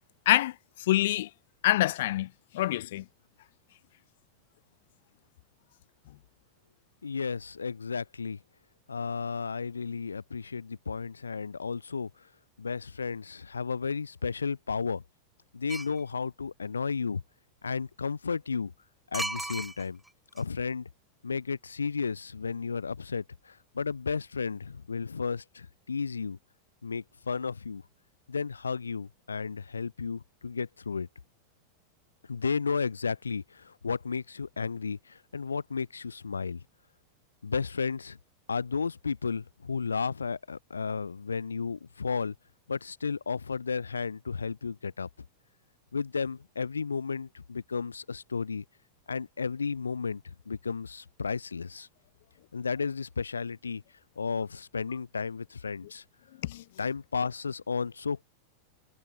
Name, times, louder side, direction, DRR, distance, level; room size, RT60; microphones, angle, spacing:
voice 1, 0.9-1.3 1.6-2.3 2.5-3.0 56.5-56.6, left 15 dB, 55° left, 1.8 m, -25 dB
voice 2, 7.0-8.4 8.9-12.1 12.6-15.0 15.5-17.2 17.6-18.7 19.1-20.0 20.3-20.9 21.2-26.4 26.8-27.8 28.3-31.1 32.3-36.6 37.4-38.2 38.5-42.3 42.7-45.1 45.9-48.6 49.1-51.9 52.5-53.8 54.2-56.0 56.8-58.2, left 5 dB, 75° left, 7.8 m, -33 dB
sound 1, 15.7-16.0 19.1-20.1 20.4-20.5, right 2 dB, 5° right, 5.8 m, -34 dB
figure-of-eight pair, 90°, 0 cm